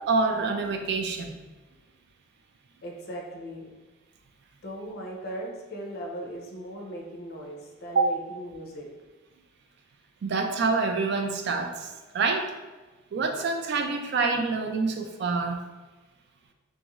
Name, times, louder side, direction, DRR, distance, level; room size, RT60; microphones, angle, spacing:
voice 1, 0.0-1.3 7.9-8.1 10.2-12.5 13.1-15.6, right 4 dB, 50° right, 4 dB, 0.3 m, -26 dB
voice 2, 2.8-3.7 4.6-8.9, equal, 45° left, 0 dB, 0.5 m, -38 dB
2.6 x 2.4 x 3.0 m, 1.2 s
head